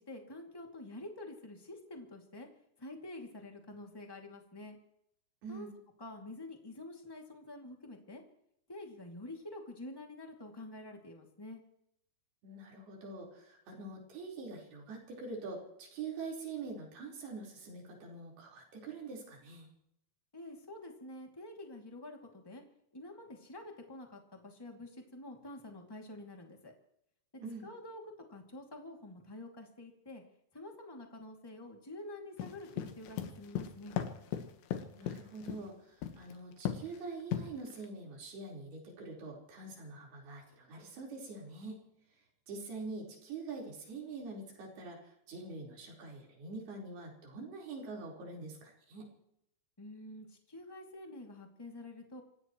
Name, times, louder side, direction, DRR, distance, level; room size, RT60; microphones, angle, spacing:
voice 1, 0.0-2.5 2.8-4.8 5.5-5.7 6.0-8.2 8.7-11.6 20.3-22.6 22.9-26.7 27.6-28.0 28.3-30.2 30.5-33.9 49.8-52.2, left 2 dB, 15° left, 2 dB, 0.9 m, -48 dB
voice 2, 12.4-19.7 27.4-27.7 34.9-41.8 42.5-49.1, right 3 dB, 60° right, -2 dB, 6.2 m, -45 dB
sound 1, 32.4-35.6 36.0-36.3 36.7-37.0 37.3-37.9, left 10 dB, 80° left, 3.5 m, -37 dB
27.0 x 16.5 x 3.1 m, 0.76 s
omnidirectional pair, 5.2 m